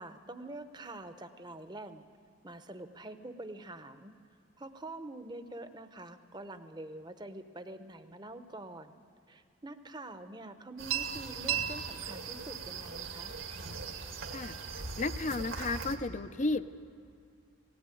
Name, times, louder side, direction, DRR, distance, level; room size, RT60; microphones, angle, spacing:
voice 1, 0.0-2.1 2.4-4.1 4.6-9.0 9.3-13.3, right 2 dB, 20° right, 9 dB, 0.8 m, -45 dB
sound 1, 10.8-16.0, right 6 dB, 75° right, 2.0 m, -38 dB
voice 2, 15.0-16.6, left 3 dB, 35° left, 13 dB, 0.6 m, -33 dB
19.0 x 17.5 x 9.1 m, 2.4 s
head